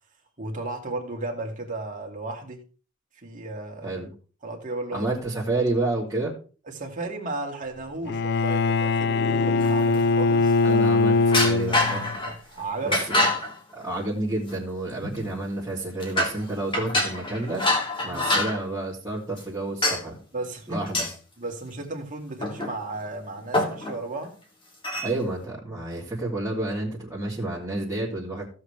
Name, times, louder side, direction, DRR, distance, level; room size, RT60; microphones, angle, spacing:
voice 1, 0.4-2.6 3.1-4.0 4.4-5.1 6.7-11.1 12.2-13.1 18.1-18.2 20.3-20.9 21.4-24.3, right 2 dB, 40° right, 1 dB, 2.6 m, -34 dB
voice 2, 4.9-6.3 10.6-12.0 12.8-13.2 13.7-17.6 18.0-20.2 20.7-21.1 25.0-28.5, right 2 dB, 15° right, -8 dB, 2.9 m, -30 dB
Bowed string instrument, 8.1-12.2, left 3 dB, 55° left, 0.4 m, -22 dB
sound 1, 9.6-10.3 11.3-12.4 12.9-13.5 14.5-14.6 15.0-15.5 16.0-16.4 16.7-18.6 19.4-19.5 19.8-20.0 20.9-21.1 22.4-23.0 23.2-23.3 23.5-24.0 24.8-25.1, left 2 dB, 25° left, 2.6 m, -26 dB
16.0 x 7.3 x 3.4 m, 0.37 s
head